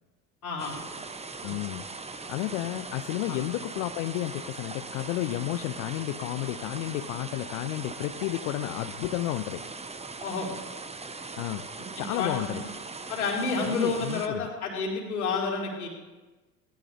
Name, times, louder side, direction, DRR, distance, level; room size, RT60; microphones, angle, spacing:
voice 1, 0.4-0.8 1.4-1.5 3.3-3.4 10.2-10.5 12.0-12.6 13.1-15.9, left 4 dB, 80° left, -2 dB, 4.7 m, -30 dB
sound 1, 0.6-14.3, right 3 dB, 15° right, 1.3 m, -40 dB
voice 2, 1.4-9.6 11.4-12.6 13.6-14.5, left 15 dB, 65° left, 9 dB, 0.9 m, -32 dB
20.0 x 19.0 x 3.6 m, 1.2 s
figure-of-eight pair, 65°, 43 cm